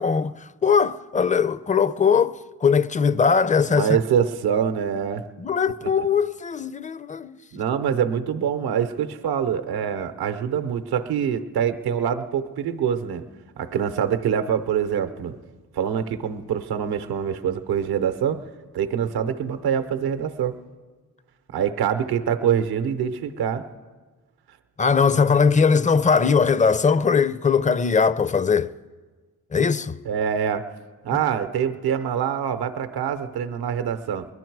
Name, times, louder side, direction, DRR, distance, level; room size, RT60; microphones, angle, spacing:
voice 1, 0.0-4.0 5.4-7.4 24.8-28.7 29.5-30.0, left 5 dB, 20° left, 0.4 m, -20 dB
voice 2, 3.7-5.2 7.5-13.2 13.6-15.3 15.7-18.4 18.7-20.6 21.5-23.6 30.1-30.7 31.0-34.3, right 8 dB, 80° right, 0.7 m, -25 dB
21.0 x 11.0 x 4.6 m
supercardioid pair, 45°, 37 cm